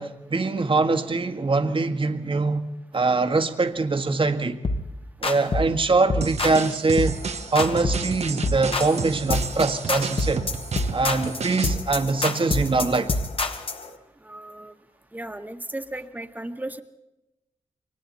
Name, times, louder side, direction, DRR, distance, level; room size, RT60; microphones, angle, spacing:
voice 1, 0.0-2.7 2.9-4.6 5.2-7.2 7.5-10.4 10.9-13.2, right 3 dB, 45° right, 1.8 m, -23 dB
sound 1, 4.6-4.9 5.2-5.7 6.1-6.6 7.0-7.2 7.6-8.1 8.4-9.0 9.3-9.6 9.9-13.8, left 2 dB, 50° left, 1.7 m, -26 dB
sound 2, 6.2-11.8, right 5 dB, 60° right, 1.1 m, -32 dB
sound 3, 7.0-13.9, left 3 dB, 65° left, 7.5 m, -45 dB
voice 2, 14.2-14.7 15.1-16.8, right 1 dB, 15° right, 1.7 m, -35 dB
29.0 x 23.5 x 4.3 m
cardioid pair, 55°, 12 cm